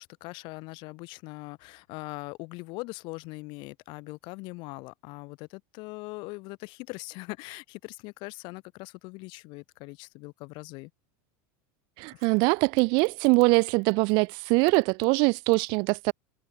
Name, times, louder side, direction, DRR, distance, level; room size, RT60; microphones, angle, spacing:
voice 1, 0.0-10.9 12.1-12.2, left 25 dB, 50° left, 5.8 m, -41 dB
voice 2, 12.0-16.1, right 31 dB, 50° right, 0.5 m, -23 dB
supercardioid pair, 150°, 10 cm